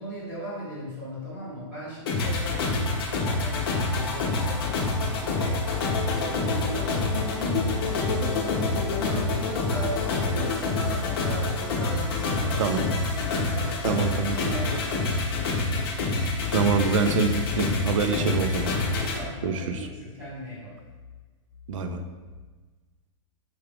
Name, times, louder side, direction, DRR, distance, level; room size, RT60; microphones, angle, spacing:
voice 1, 0.0-5.7 6.1-7.0 8.0-13.8 14.2-15.5 18.1-18.3 18.6-20.7, right 1 dB, 10° right, -8 dB, 1.0 m, -38 dB
sound 1, 2.1-19.2, left 3 dB, 45° left, 0.7 m, -27 dB
voice 2, 13.8-14.4 16.5-18.7 19.4-19.9 21.7-22.0, right 5 dB, 70° right, 7 dB, 0.5 m, -25 dB
5.9 x 2.4 x 3.3 m, 1.3 s
supercardioid pair, 180°, 17 cm